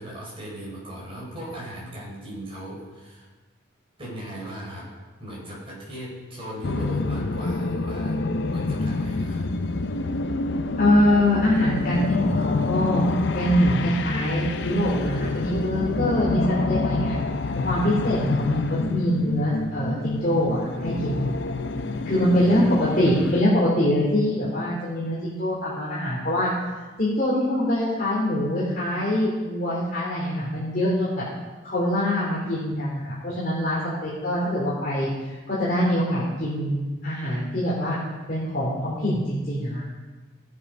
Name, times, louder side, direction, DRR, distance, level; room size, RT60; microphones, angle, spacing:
voice 1, 0.0-3.3 4.0-4.9 5.2-9.5 22.3-23.3, right 1 dB, 25° right, -4 dB, 4.8 m, -38 dB
sound 1, 6.6-23.4, left 3 dB, 60° left, 0.6 m, -27 dB
voice 2, 10.8-13.0 13.3-17.2 17.6-21.2 22.0-26.5 27.0-31.2 31.6-38.0 38.3-39.8, left 1 dB, 45° left, -8 dB, 3.0 m, -24 dB
16.5 x 8.4 x 5.3 m, 1.3 s
head